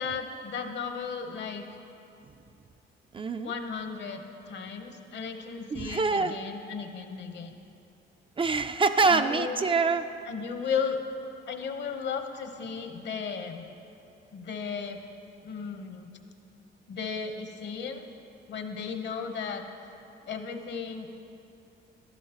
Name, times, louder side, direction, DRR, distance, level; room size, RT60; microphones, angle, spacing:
voice 1, 0.0-1.6 3.4-7.5 9.1-9.6 10.3-11.0 11.5-13.6 14.3-15.0 15.4-16.1 16.9-18.1 18.5-19.6 20.3-21.1, left 6 dB, 60° left, 6 dB, 1.0 m, -35 dB
voice 2, 3.1-3.5 5.7-6.3 8.4-10.1, right 4 dB, 25° right, 8 dB, 0.4 m, -25 dB
12.5 x 11.0 x 2.9 m, 2.7 s
cardioid pair, 90°, 20 cm